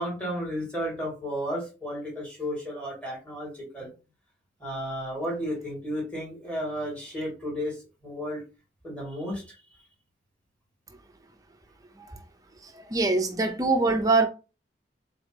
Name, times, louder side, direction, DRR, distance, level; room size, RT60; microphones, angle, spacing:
voice 1, 0.0-3.9 4.6-7.8 8.0-8.4 8.8-9.6, equal, 5° left, 2.4 m, -33 dB
voice 2, 12.6-14.3, right 3 dB, 20° right, 0.5 m, -23 dB
3.9 x 3.8 x 3.5 m
head